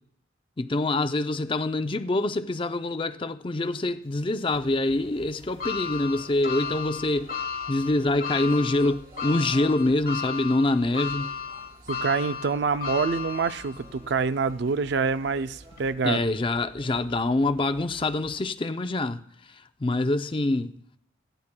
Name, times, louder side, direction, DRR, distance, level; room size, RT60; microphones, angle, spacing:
voice 1, 0.6-7.3 7.7-11.3 16.0-19.2 19.5-20.8, left 2 dB, 25° left, 0.5 m, -25 dB
sound 1, 4.5-18.4, right 1 dB, 45° right, 3.0 m, -51 dB
sound 2, 5.6-14.0 14.5-14.6 15.7-15.8, left 6 dB, 50° left, 1.2 m, -34 dB
voice 2, 11.9-16.2, right 5 dB, 60° right, 0.4 m, -26 dB
18.0 x 14.5 x 2.2 m
head